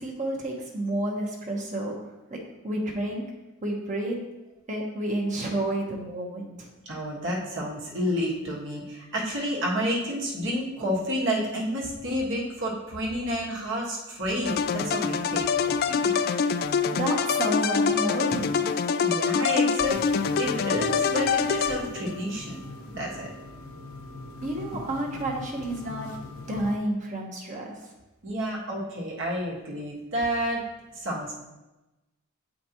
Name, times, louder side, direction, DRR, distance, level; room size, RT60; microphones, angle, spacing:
voice 1, 0.0-1.9 2.3-3.2 3.6-4.2 4.7-6.7 16.9-18.6 24.4-26.1 26.5-27.7, right 1 dB, 35° right, -1 dB, 1.1 m, -30 dB
voice 2, 6.8-16.5 19.0-20.0 20.4-22.6 22.9-23.3 26.1-26.2 28.2-30.6 30.9-31.3, equal, 60° right, -3 dB, 1.5 m, -30 dB
sound 1, 14.4-22.2, left 6 dB, 45° left, 0.3 m, -25 dB
sound 2, 19.8-26.8, left 2 dB, 75° left, 1.0 m, -41 dB
7.9 x 5.1 x 3.0 m, 1.0 s
head